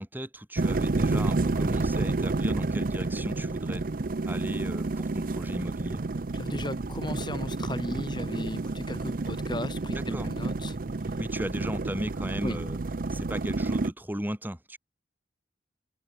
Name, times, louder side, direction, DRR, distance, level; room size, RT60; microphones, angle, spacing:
voice 1, 0.0-3.8 4.3-6.0 9.9-10.3 11.2-12.8 13.1-14.8, equal, 10° right, 4.5 m, -36 dB
sound 1, 0.6-13.9, right 3 dB, 50° right, 0.6 m, -30 dB
voice 2, 6.3-10.8 11.0-11.2 12.4-12.6, left 1 dB, 25° left, 4.5 m, -36 dB
head